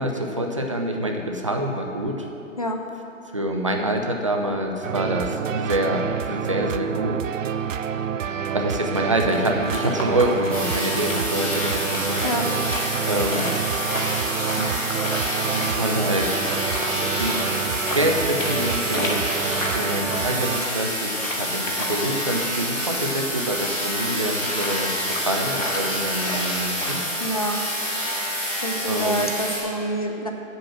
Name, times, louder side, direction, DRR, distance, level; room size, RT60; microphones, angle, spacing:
voice 1, 0.0-2.3 3.3-7.2 8.5-12.4 13.0-13.5 15.5-16.4 17.1-17.5 17.9-27.0 28.9-29.2, right 1 dB, 25° right, 2 dB, 0.5 m, -26 dB
sound 1, 4.8-20.6, right 8 dB, 75° right, 0.5 m, -28 dB
sound 2, 9.2-27.1, left 1 dB, 85° left, 1.9 m, -34 dB
sound 3, 10.5-29.6, equal, 5° left, 2.3 m, -28 dB
voice 2, 27.2-27.6 28.6-30.3, equal, 30° left, 3 dB, 0.4 m, -26 dB
7.8 x 6.1 x 7.4 m, 2.8 s
figure-of-eight pair, 150°, 39 cm